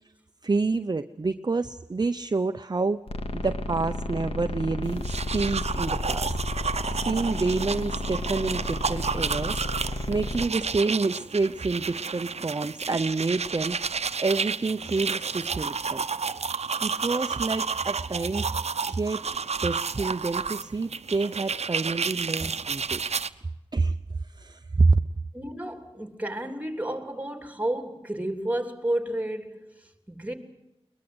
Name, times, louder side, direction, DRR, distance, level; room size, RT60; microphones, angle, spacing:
voice 1, 0.4-3.0 3.3-6.4 6.9-13.8 14.2-16.0 16.8-18.5 18.9-19.2 19.6-23.0 23.7-24.0 24.2-25.0, right 3 dB, 40° right, 0.7 m, -28 dB
sound 1, 3.1-10.5, left 1 dB, 65° left, 2.4 m, -32 dB
sound 2, 4.9-23.3, right 5 dB, 80° right, 0.8 m, -31 dB
voice 2, 25.3-30.3, right 1 dB, 15° right, 3.2 m, -31 dB
22.0 x 21.0 x 7.9 m
wide cardioid pair, 70°, 11 cm